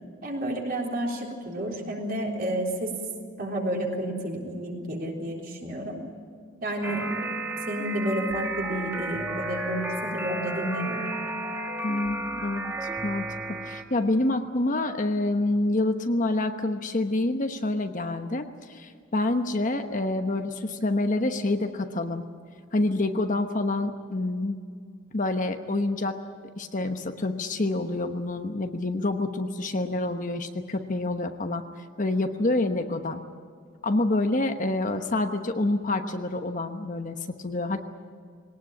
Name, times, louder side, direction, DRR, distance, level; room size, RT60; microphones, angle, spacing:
voice 1, 0.2-3.0 3.4-6.0 6.6-7.3 7.7-11.0, right 1 dB, 45° right, 0 dB, 3.8 m, -30 dB
sound 1, 6.8-13.8, right 2 dB, 15° right, 2.1 m, -32 dB
voice 2, 11.8-13.3 13.6-22.3 22.7-24.6 25.1-26.2 26.6-31.6 32.0-33.2 33.8-37.9, left 2 dB, 40° left, 6 dB, 1.1 m, -27 dB
21.0 x 18.5 x 8.8 m, 2.1 s
head